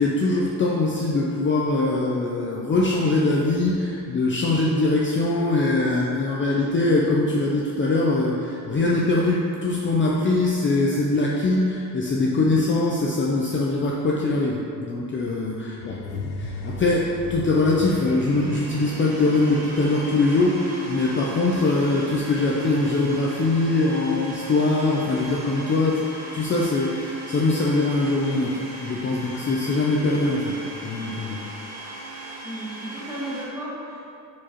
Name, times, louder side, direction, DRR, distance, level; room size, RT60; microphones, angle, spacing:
voice 1, 0.0-26.0 26.3-30.6 30.8-31.4, left 2 dB, 30° left, -3 dB, 0.5 m, -22 dB
sound 1, 15.8-19.7, left 3 dB, 80° left, 0.7 m, -36 dB
Domestic sounds home sounds, 17.6-33.5, right 1 dB, 40° right, 1.7 m, -38 dB
voice 2, 32.4-34.0, right 1 dB, 10° right, -7 dB, 1.5 m, -34 dB
11.5 x 4.8 x 3.0 m, 2.6 s
cardioid pair, 165°, 38 cm